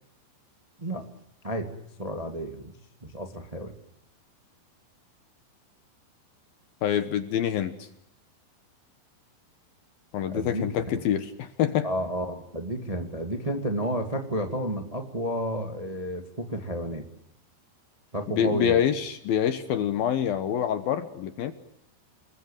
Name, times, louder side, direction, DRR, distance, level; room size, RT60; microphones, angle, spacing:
voice 1, 2.0-2.7 3.0-3.7 10.3-10.7 11.8-17.0 18.1-18.8, equal, 15° right, 5 dB, 1.2 m, -31 dB
voice 2, 6.8-7.9 10.1-11.9 18.3-21.5, left 9 dB, 65° left, 11 dB, 2.6 m, -26 dB
29.0 x 21.0 x 9.2 m, 0.79 s
omnidirectional pair, 5.3 m